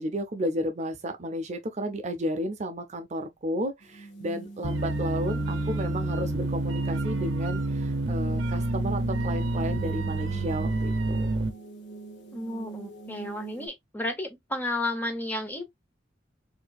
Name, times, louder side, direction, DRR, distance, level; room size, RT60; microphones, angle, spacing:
voice 1, 0.0-11.3, equal, 35° right, 0.5 m, -33 dB
sound 1, 3.8-13.7, right 4 dB, 65° left, 0.8 m, -43 dB
sound 2, 4.6-11.5, right 2 dB, 75° right, 0.7 m, -28 dB
voice 2, 12.3-15.6, left 1 dB, 10° left, 0.8 m, -32 dB
4.2 x 2.7 x 2.3 m
head